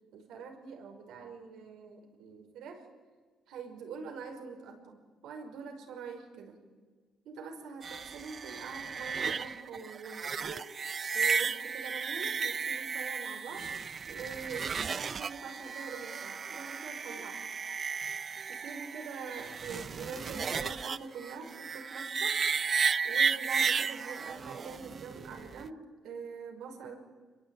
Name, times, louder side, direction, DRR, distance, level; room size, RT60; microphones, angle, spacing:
voice 1, 0.1-2.8 3.5-6.6 7.2-10.6 11.1-13.7 14.1-17.4 18.5-22.4 23.0-26.9, right 5 dB, 85° right, 3 dB, 5.7 m, -44 dB
sound 1, 7.8-25.7, right 6 dB, 45° right, 0.7 m, -34 dB
26.5 x 22.0 x 9.3 m, 1.4 s
cardioid pair, 90°, 0 cm